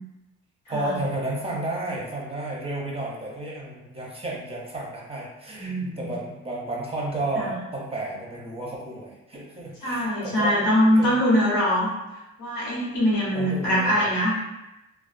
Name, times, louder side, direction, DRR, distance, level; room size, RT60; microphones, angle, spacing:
voice 1, 0.7-10.6 11.0-11.2 13.3-14.1, right 2 dB, 20° right, -3 dB, 0.6 m, -32 dB
voice 2, 5.5-6.1 7.4-7.5 9.8-11.9 12.4-14.3, equal, 85° left, -6 dB, 1.1 m, -23 dB
2.3 x 2.2 x 2.4 m, 0.99 s
cardioid pair, 90°, 30 cm